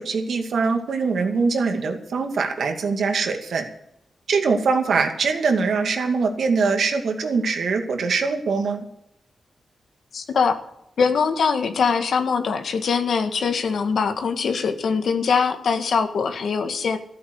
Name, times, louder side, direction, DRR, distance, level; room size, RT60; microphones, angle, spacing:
voice 1, 0.0-3.6 4.3-8.8, right 4 dB, 70° right, 5 dB, 2.4 m, -22 dB
voice 2, 10.1-10.6 11.0-17.0, left 5 dB, 70° left, 7 dB, 1.7 m, -22 dB
14.5 x 8.6 x 8.1 m, 0.77 s
wide cardioid pair, 115°, 0 cm